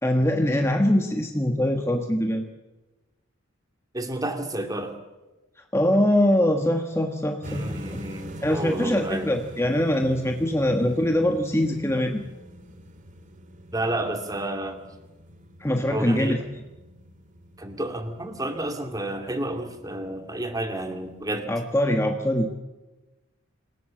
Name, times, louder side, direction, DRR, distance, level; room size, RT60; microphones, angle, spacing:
voice 1, 0.0-2.5 5.7-7.6 7.9-8.0 8.4-12.2 15.6-16.4 21.5-22.5, left 1 dB, 15° left, 3 dB, 1.4 m, -23 dB
voice 2, 3.9-4.9 7.5-9.3 13.7-14.8 15.9-16.4 17.6-21.5, right 1 dB, 20° right, 6 dB, 2.4 m, -30 dB
sound 1, 7.4-21.4, equal, 40° right, 2.3 m, -44 dB
27.5 x 17.0 x 7.6 m, 1.1 s
head